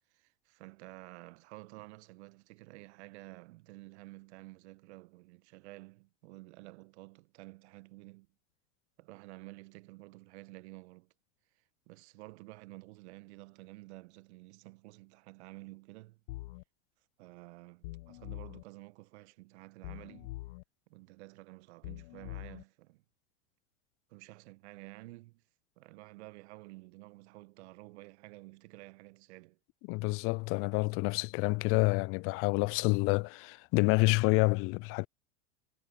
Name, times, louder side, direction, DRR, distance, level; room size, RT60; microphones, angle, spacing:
voice 1, 0.1-8.3 9.0-11.1 11.9-16.2 17.2-20.3 20.9-23.0 24.1-25.4 25.8-29.6, right 22 dB, 60° right, 1.3 m, -51 dB
sound 1, 16.3-16.6 17.8-18.6 19.8-20.6 21.8-22.6, left 19 dB, 60° left, 1.2 m, -44 dB
voice 2, 29.9-35.1, left 28 dB, 40° left, 0.4 m, -28 dB
hypercardioid pair, 100°, 37 cm